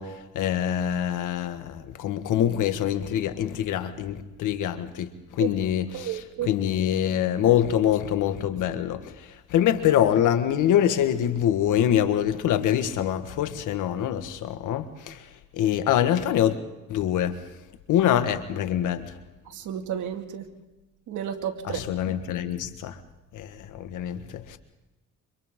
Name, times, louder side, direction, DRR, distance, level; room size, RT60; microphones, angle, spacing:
voice 1, 0.0-16.6 16.9-17.4 17.9-19.2 21.6-23.0 23.3-24.6, left 10 dB, 85° left, 1.7 m, -25 dB
voice 2, 5.9-6.5 19.5-20.5 21.1-21.8, right 10 dB, 80° right, 2.3 m, -32 dB
29.0 x 26.5 x 3.8 m
cardioid pair, 90°, 30 cm